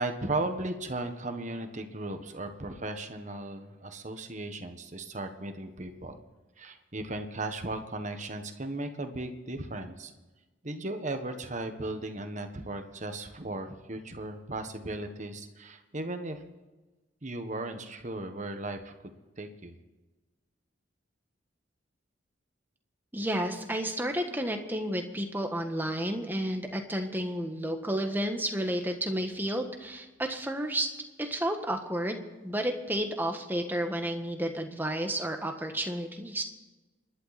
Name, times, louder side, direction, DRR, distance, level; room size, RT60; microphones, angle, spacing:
voice 1, 0.0-6.2 6.6-10.1 10.6-16.4 17.2-19.7, right 2 dB, 40° right, 7 dB, 1.4 m, -36 dB
voice 2, 23.1-30.9 31.2-36.4, right 1 dB, 10° right, 4 dB, 1.5 m, -31 dB
28.5 x 11.5 x 4.3 m, 1.2 s
head